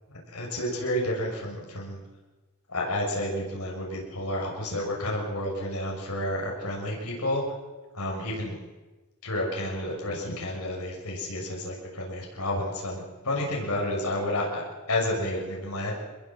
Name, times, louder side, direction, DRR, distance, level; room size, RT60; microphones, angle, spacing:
voice 1, 0.3-2.0 2.7-7.4 7.9-8.5 9.2-15.9, left 1 dB, 85° left, -2 dB, 7.0 m, -30 dB
26.0 x 21.5 x 7.7 m, 1.2 s
head